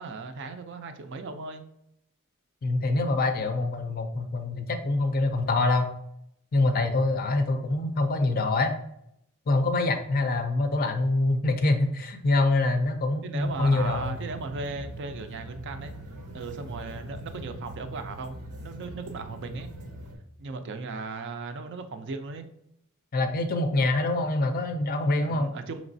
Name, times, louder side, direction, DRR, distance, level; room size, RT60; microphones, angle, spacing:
voice 1, 0.0-1.6 13.2-15.9 16.3-19.7 20.4-22.5 25.3-25.8, right 3 dB, 50° right, 8 dB, 0.4 m, -37 dB
voice 2, 2.6-5.9 6.5-8.8 9.5-14.2 23.1-25.5, left 2 dB, 40° left, 7 dB, 0.4 m, -25 dB
sound 1, 13.4-20.2, right 1 dB, 85° right, 0.7 m, -42 dB
5.0 x 3.0 x 2.6 m, 0.78 s
head